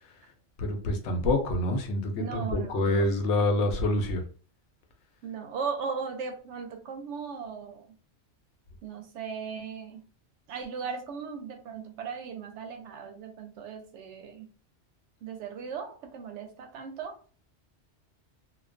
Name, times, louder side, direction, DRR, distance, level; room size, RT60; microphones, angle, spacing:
voice 1, 0.6-4.2, left 1 dB, 80° left, 0.9 m, -26 dB
voice 2, 2.2-3.1 5.2-7.9 8.8-10.1 10.5-14.5 15.2-17.2, right 6 dB, 85° right, 0.9 m, -37 dB
2.3 x 2.2 x 2.4 m
omnidirectional pair, 1.2 m